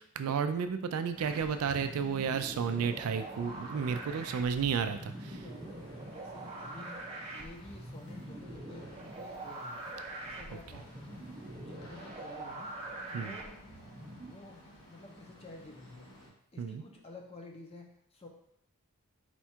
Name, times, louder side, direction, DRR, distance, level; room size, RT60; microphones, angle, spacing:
voice 1, 0.0-5.1 13.1-13.3 16.6-16.8, right 6 dB, 70° right, 9 dB, 0.3 m, -32 dB
sound 1, 1.1-16.3, left 1 dB, 70° left, 1.1 m, -54 dB
sound 2, 1.2-14.3, right 2 dB, 30° right, 0.6 m, -44 dB
voice 2, 4.8-7.1 7.3-9.8 10.2-13.5 14.3-16.1 16.5-18.3, left 2 dB, 25° left, 1 dB, 0.6 m, -51 dB
4.3 x 2.4 x 4.3 m, 0.71 s
head